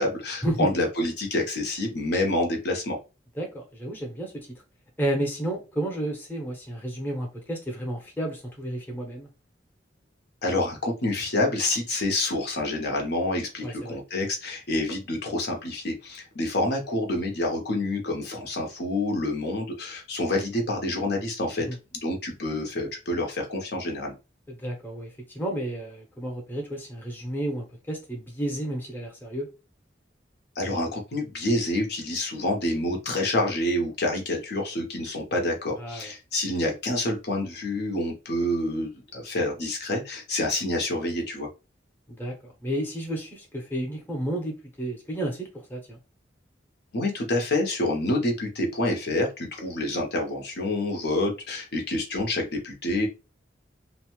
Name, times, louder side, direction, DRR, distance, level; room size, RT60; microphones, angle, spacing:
voice 1, 0.0-3.0 10.4-21.7 22.0-24.1 30.6-41.5 46.9-53.1, left 1 dB, 65° left, 0.8 m, -27 dB
voice 2, 3.4-4.5 5.0-9.3 13.6-14.0 21.7-21.8 24.5-29.5 35.8-36.1 42.1-46.0, right 1 dB, 10° left, 0.8 m, -32 dB
2.7 x 2.1 x 3.0 m
head